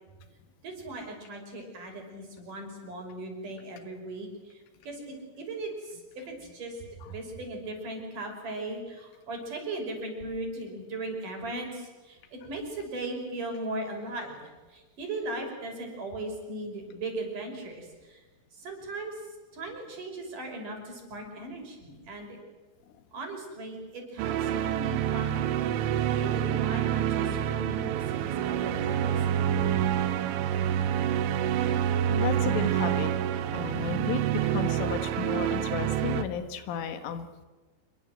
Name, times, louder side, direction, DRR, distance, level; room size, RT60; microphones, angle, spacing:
voice 1, 0.6-18.2 18.5-22.4 23.1-25.8 26.1-29.7, right 2 dB, 40° right, 2 dB, 7.1 m, -38 dB
sound 1, 24.2-36.2, right 10 dB, 80° right, 3.7 m, -27 dB
voice 2, 32.1-33.1 33.5-37.3, left 9 dB, 80° left, 9 dB, 4.1 m, -33 dB
27.0 x 23.0 x 7.8 m, 1.3 s
omnidirectional pair, 5.7 m